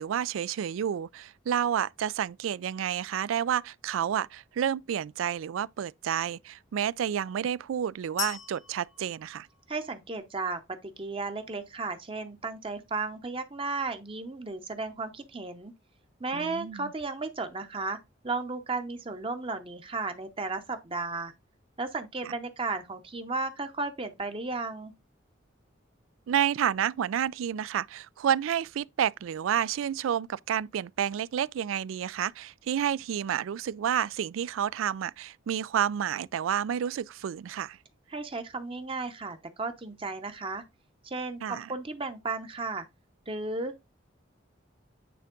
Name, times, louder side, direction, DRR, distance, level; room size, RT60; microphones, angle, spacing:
voice 1, 0.0-9.5 16.3-16.9 26.3-37.8 41.4-41.7, right 9 dB, 85° right, 0.3 m, -30 dB
sound 1, 8.2-10.1, left 9 dB, 70° left, 0.8 m, -39 dB
voice 2, 9.7-15.7 16.2-18.0 18.2-21.3 21.8-24.9 38.1-40.6 41.0-42.8 43.3-43.8, right 3 dB, 25° right, 0.8 m, -34 dB
9.3 x 3.5 x 3.7 m
head